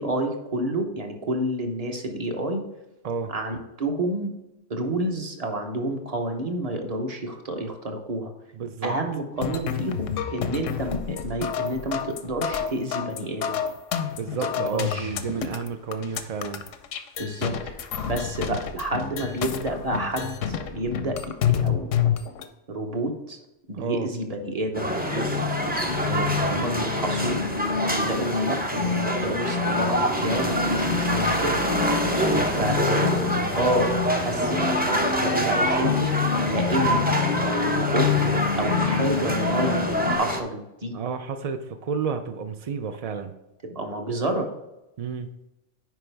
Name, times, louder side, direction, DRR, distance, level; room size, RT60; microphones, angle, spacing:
voice 1, 0.0-2.6 3.3-4.3 4.7-8.3 8.8-13.6 14.6-15.1 17.2-21.9 22.7-23.4 23.7-25.3 26.4-27.4 27.8-31.6 32.6-32.8 33.5-36.1 36.5-37.1 37.4-40.9 43.6-44.5, right 1 dB, 35° right, 4 dB, 1.0 m, -29 dB
voice 2, 8.6-8.9 14.2-16.6 23.7-24.1 26.1-26.7 32.0-33.1 40.9-43.3 45.0-45.3, right 6 dB, 65° right, 7 dB, 0.3 m, -31 dB
sound 1, 9.4-22.4, left 8 dB, 85° left, 1.0 m, -29 dB
sound 2, 24.8-40.4, right 1 dB, 10° right, 0.6 m, -26 dB
sound 3, 24.9-40.2, left 7 dB, 60° left, 0.6 m, -28 dB
9.2 x 5.1 x 3.4 m, 0.93 s
omnidirectional pair, 1.3 m